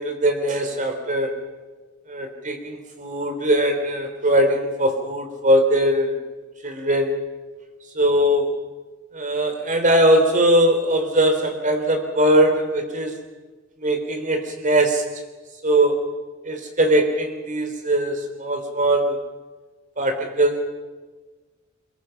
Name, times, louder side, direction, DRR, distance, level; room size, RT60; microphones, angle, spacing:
voice 1, 0.0-1.3 2.1-6.2 6.6-7.2 8.0-8.5 9.1-13.2 13.8-15.0 15.6-16.0 16.5-19.2 20.0-20.6, right 1 dB, 40° right, 5 dB, 3.4 m, -20 dB
23.5 x 22.5 x 5.8 m, 1.3 s
head